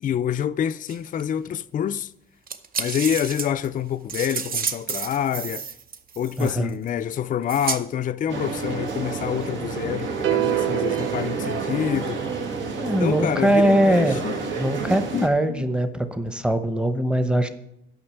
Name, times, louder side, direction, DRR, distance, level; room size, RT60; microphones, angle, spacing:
voice 1, 0.0-2.1 2.8-5.7 6.2-12.2 13.0-14.4 15.1-15.7, left 9 dB, 40° left, 0.4 m, -27 dB
sound 1, 0.9-1.2 2.5-6.9 7.5-7.8, right 6 dB, 45° right, 0.8 m, -30 dB
voice 2, 6.4-6.7 12.8-14.2 14.6-17.5, right 1 dB, 5° right, 0.9 m, -21 dB
sound 2, 8.3-15.3, right 4 dB, 70° right, 1.4 m, -29 dB
sound 3, 10.2-12.5, right 13 dB, 85° right, 0.5 m, -27 dB
8.7 x 5.9 x 7.0 m
cardioid pair, 90°, 20 cm